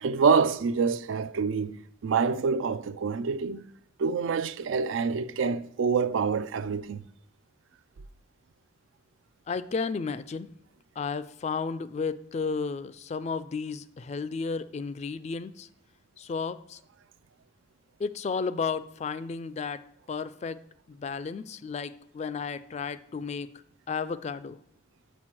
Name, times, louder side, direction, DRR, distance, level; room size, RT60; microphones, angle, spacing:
voice 1, 0.0-3.7 4.0-7.0, right 5 dB, 80° right, 0.4 m, -26 dB
voice 2, 9.5-10.5 11.0-15.7 16.2-16.8 18.0-20.6 20.9-23.5 23.9-24.6, left 5 dB, 35° left, 0.3 m, -33 dB
6.7 x 6.3 x 5.9 m
head